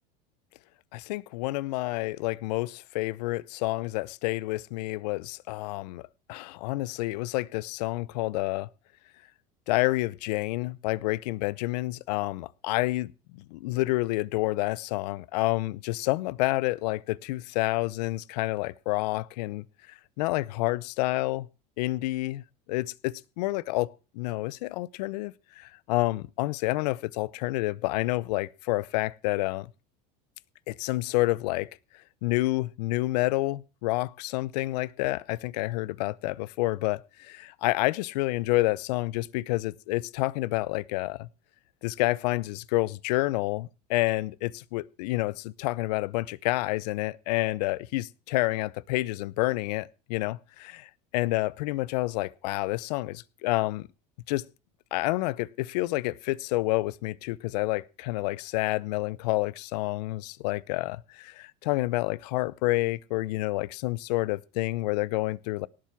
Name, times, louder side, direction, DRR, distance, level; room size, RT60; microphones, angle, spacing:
voice 1, 0.9-8.7 9.7-13.1 13.5-21.5 21.8-22.4 22.7-23.9 24.1-29.7 30.7-31.7 32.2-41.3 41.8-53.9 54.3-54.4 54.9-65.7, left 20 dB, 80° left, 0.7 m, -29 dB
18.5 x 7.7 x 5.9 m
supercardioid pair, 125°, 20 cm